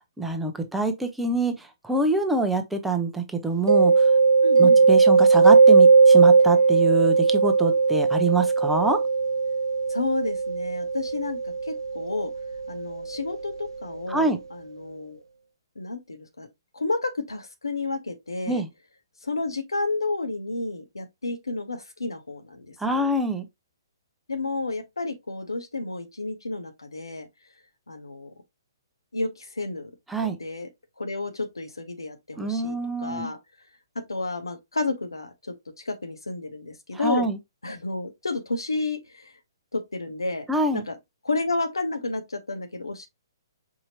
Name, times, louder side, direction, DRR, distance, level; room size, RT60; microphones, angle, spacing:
voice 1, 0.2-4.1 4.6-9.0 14.1-14.4 18.5-18.7 22.8-23.5 30.1-30.4 32.4-33.3 36.9-37.4 40.5-40.8, right 2 dB, 5° right, 0.7 m, -25 dB
Mallet percussion, 3.7-13.3, right 4 dB, 80° right, 0.5 m, -18 dB
voice 2, 4.4-4.8 9.9-12.3 12.7-15.2 15.8-16.5 16.7-18.6 19.2-23.1 24.3-27.3 27.9-28.3 29.1-29.9 30.2-30.7 31.0-33.4 33.9-37.3 37.6-39.3 39.7-40.5 40.7-41.0 41.2-43.1, left 3 dB, 90° left, 0.8 m, -31 dB
4.8 x 2.8 x 2.7 m
figure-of-eight pair, 130°, 2 cm